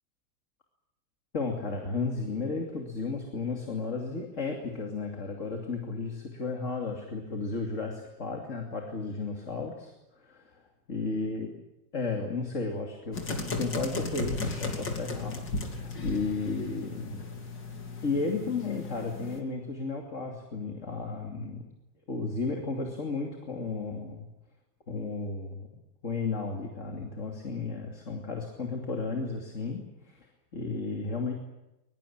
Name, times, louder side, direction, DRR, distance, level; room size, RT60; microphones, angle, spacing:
voice 1, 1.3-10.6 10.9-11.5 11.9-13.2 13.6-17.3 18.0-21.7 22.1-24.3 24.9-25.7 26.0-30.3 30.5-31.3, left 4 dB, 40° left, 2 dB, 3.1 m, -33 dB
sound 1, 13.1-19.4, left 3 dB, 65° left, 3.9 m, -35 dB
22.5 x 22.5 x 8.8 m, 0.92 s
omnidirectional pair, 2.1 m